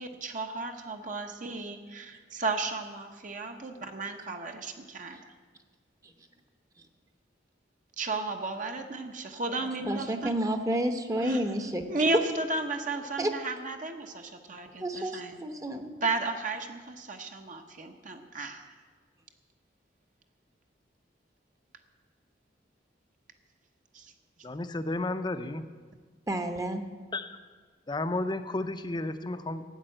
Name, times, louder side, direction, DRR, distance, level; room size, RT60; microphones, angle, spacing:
voice 1, 0.0-5.2 8.0-10.3 11.2-11.4 11.9-15.4 16.0-18.6 23.9-24.0, right 3 dB, 45° right, 4 dB, 1.0 m, -34 dB
voice 2, 9.9-12.2 13.2-13.3 14.8-16.0 26.3-26.8, right 1 dB, 20° right, 7 dB, 0.9 m, -30 dB
voice 3, 24.4-25.6 27.1-27.4 27.9-29.6, left 2 dB, 25° left, 9 dB, 0.7 m, -32 dB
13.0 x 9.2 x 7.8 m, 1.5 s
head